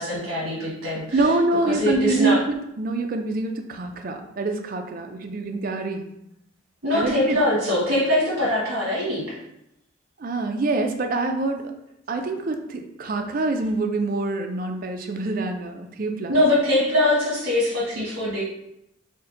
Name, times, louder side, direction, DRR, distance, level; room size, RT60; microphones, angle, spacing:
voice 1, 0.0-1.3 1.7-2.4 6.8-9.4 16.3-18.4, left 1 dB, 70° right, -6 dB, 1.1 m, -22 dB
voice 2, 1.1-6.1 6.9-7.4 10.2-11.7 12.1-16.3, right 3 dB, 45° right, 5 dB, 0.4 m, -25 dB
4.3 x 2.2 x 3.7 m, 0.83 s
head